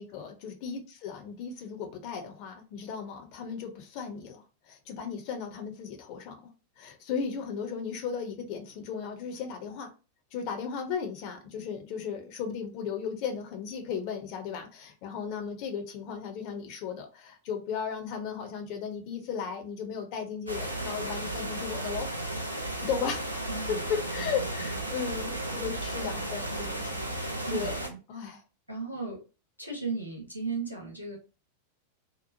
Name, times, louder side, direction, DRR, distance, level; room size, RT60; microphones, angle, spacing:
voice 1, 0.0-6.3 6.8-9.9 10.3-22.1 22.8-23.2 23.7-27.2 27.5-28.4, left 6 dB, 45° left, 0.5 m, -36 dB
sound 1, 20.5-27.9, right 1 dB, 85° right, 0.4 m, -34 dB
voice 2, 23.5-23.8 24.2-25.0 26.0-26.1 27.4-28.3 28.7-29.2 29.6-31.2, right 4 dB, 90° left, 0.9 m, -37 dB
2.8 x 2.0 x 2.6 m
figure-of-eight pair, 90°, 0 cm